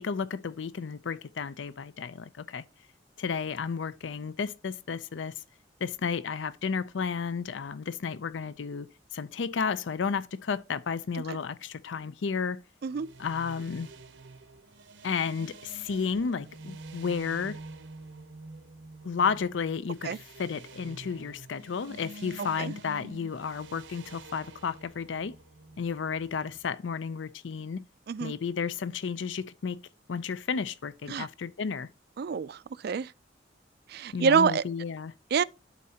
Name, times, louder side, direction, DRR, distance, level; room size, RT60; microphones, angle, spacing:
voice 1, 0.0-2.6 3.2-5.3 5.8-12.6 13.2-13.9 15.0-17.6 19.0-25.4 25.8-27.8 28.2-29.8 30.1-31.9 34.1-35.1, left 6 dB, 80° left, 0.5 m, -32 dB
sound 1, 12.9-26.6, right 2 dB, 80° right, 0.9 m, -48 dB
voice 2, 32.2-33.1 33.9-34.6 35.3-35.4, right 6 dB, 55° right, 0.4 m, -27 dB
12.0 x 4.2 x 2.8 m
head